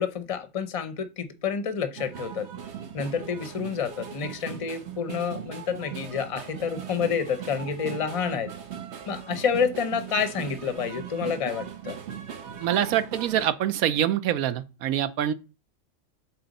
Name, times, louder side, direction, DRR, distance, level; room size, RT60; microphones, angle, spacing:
voice 1, 0.0-2.5 2.9-8.5 9.1-12.0, left 6 dB, 35° left, 0.6 m, -29 dB
sound 1, 2.0-13.5, right 8 dB, 55° right, 1.1 m, -39 dB
voice 2, 12.6-15.3, right 10 dB, 80° right, 1.1 m, -25 dB
7.6 x 4.2 x 4.0 m
omnidirectional pair, 1.5 m